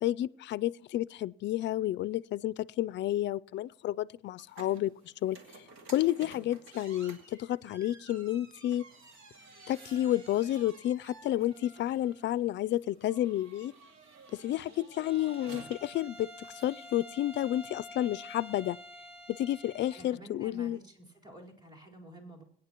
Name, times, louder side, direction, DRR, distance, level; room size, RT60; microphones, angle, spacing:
voice 1, 0.0-5.4 5.9-8.8 9.7-13.7 14.3-18.8 19.3-20.8, left 13 dB, 65° left, 0.4 m, -31 dB
sound 1, 4.4-17.7, right 3 dB, 85° right, 2.3 m, -54 dB
Bowed string instrument, 14.9-20.2, left 1 dB, 5° right, 3.0 m, -49 dB
voice 2, 19.9-22.4, right 1 dB, 20° right, 4.3 m, -50 dB
21.5 x 9.7 x 3.0 m
cardioid pair, 90°, 20 cm